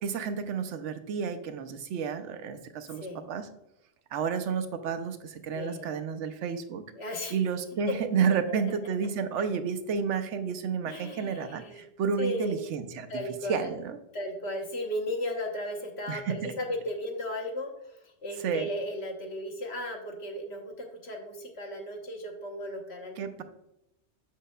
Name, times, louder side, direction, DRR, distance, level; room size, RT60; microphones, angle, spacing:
voice 1, 0.0-3.5 4.1-6.8 7.3-13.1 13.5-14.0 16.1-16.3 18.4-18.7 23.2-23.4, right 6 dB, 90° right, 9 dB, 0.9 m, -31 dB
voice 2, 2.9-3.3 5.5-6.0 7.0-7.3 7.9-8.0 8.5-8.6 10.8-11.9 12.2-12.5 13.1-13.8 14.1-23.1, left 1 dB, 65° left, 2 dB, 1.3 m, -35 dB
7.2 x 6.3 x 2.2 m, 0.84 s
omnidirectional pair, 1.2 m